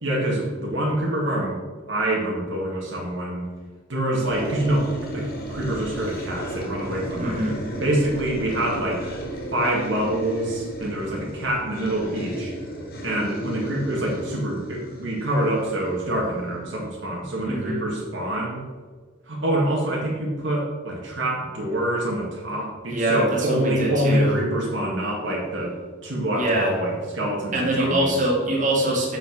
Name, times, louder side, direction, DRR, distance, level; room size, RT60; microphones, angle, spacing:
voice 1, 0.0-1.6 1.9-3.5 3.9-7.5 7.8-9.1 9.5-12.5 13.0-18.6 19.3-25.8 26.0-28.2, right 1 dB, 60° right, -2 dB, 1.7 m, -26 dB
sound 1, 4.2-17.1, right 1 dB, 45° left, 2.0 m, -34 dB
voice 2, 7.2-7.6 17.5-17.8 22.9-24.4 26.3-26.7 27.5-29.2, right 1 dB, 35° right, -3 dB, 1.9 m, -23 dB
6.9 x 6.2 x 5.9 m, 1.5 s
head